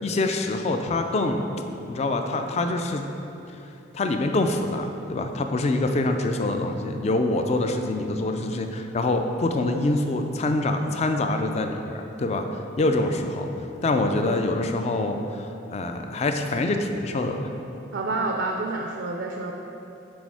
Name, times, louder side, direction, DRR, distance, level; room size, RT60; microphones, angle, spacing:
voice 1, 0.0-1.5 1.9-3.0 3.5-3.6 3.9-12.5 12.8-17.5, left 2 dB, 35° left, 5 dB, 0.4 m, -25 dB
voice 2, 17.9-19.5, right 2 dB, 70° right, 1 dB, 0.4 m, -28 dB
6.2 x 3.6 x 4.7 m, 2.9 s
head